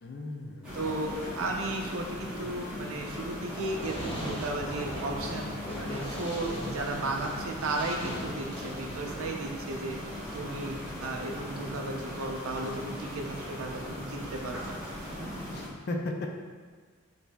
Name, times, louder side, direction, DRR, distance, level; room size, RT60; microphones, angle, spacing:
voice 1, 0.0-0.9 15.5-16.3, left 2 dB, 50° left, 2 dB, 0.4 m, -36 dB
sound 1, 0.6-15.7, left 1 dB, 5° right, 0.8 m, -39 dB
voice 2, 0.7-5.5 5.8-10.0 10.3-14.6, right 2 dB, 75° right, 1 dB, 0.5 m, -34 dB
Fireworks, 3.5-9.5, equal, 25° left, 0.8 m, -40 dB
6.2 x 2.7 x 2.3 m, 1.5 s
head